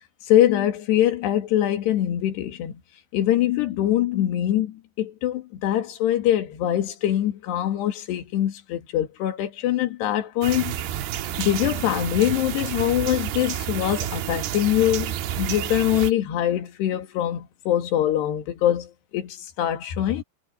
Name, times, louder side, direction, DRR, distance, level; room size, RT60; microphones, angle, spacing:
voice 1, 0.3-2.8 3.1-10.7 11.4-20.2, left 12 dB, 75° left, 4.3 m, -23 dB
sound 1, 10.4-16.1, right 11 dB, 75° right, 2.9 m, -30 dB
omnidirectional pair, 4.9 m